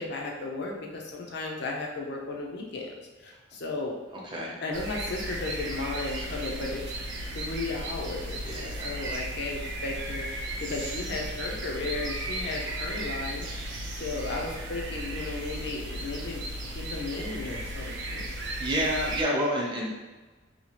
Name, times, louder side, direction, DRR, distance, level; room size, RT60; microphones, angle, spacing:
voice 1, 0.0-2.9 3.2-3.9 4.6-16.4 16.7-18.2, left 3 dB, 60° left, 0 dB, 0.5 m, -35 dB
sound 1, 4.7-19.2, right 1 dB, 70° right, 0.4 m, -35 dB
voice 2, 8.4-9.0 18.6-19.9, equal, 25° right, -4 dB, 0.7 m, -29 dB
2.9 x 2.3 x 2.8 m, 1.2 s
head